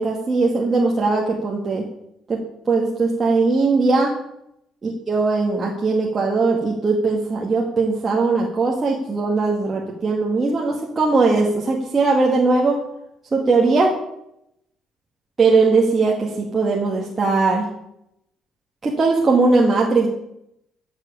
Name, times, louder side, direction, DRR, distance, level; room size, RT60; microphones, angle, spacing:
voice 1, 0.0-1.8 2.3-2.4 2.7-4.1 4.8-12.8 13.3-13.9 15.4-17.7 18.8-20.1, right 3 dB, 20° right, -2 dB, 2.0 m, -19 dB
14.5 x 7.8 x 8.2 m, 0.78 s
cardioid pair, 165°, 0 cm